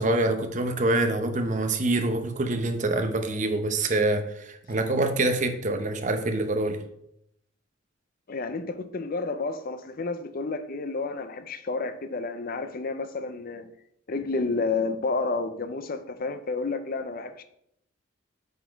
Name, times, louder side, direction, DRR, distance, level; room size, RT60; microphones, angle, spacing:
voice 1, 0.0-6.8, right 2 dB, 35° right, 0.8 m, -25 dB
voice 2, 8.3-13.7 14.1-17.4, left 3 dB, 45° left, 0.5 m, -30 dB
8.0 x 4.3 x 4.5 m
head